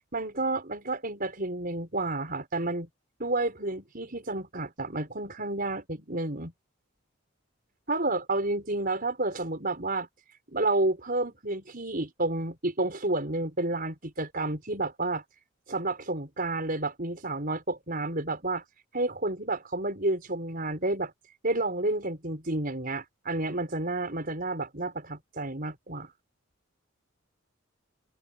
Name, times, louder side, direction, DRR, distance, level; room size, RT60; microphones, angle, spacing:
voice 1, 0.1-2.9 3.2-6.5 7.9-10.1 10.5-15.2 15.7-18.6 18.9-21.1 21.4-26.1, right 2 dB, 45° right, 5.8 m, -30 dB
open air
head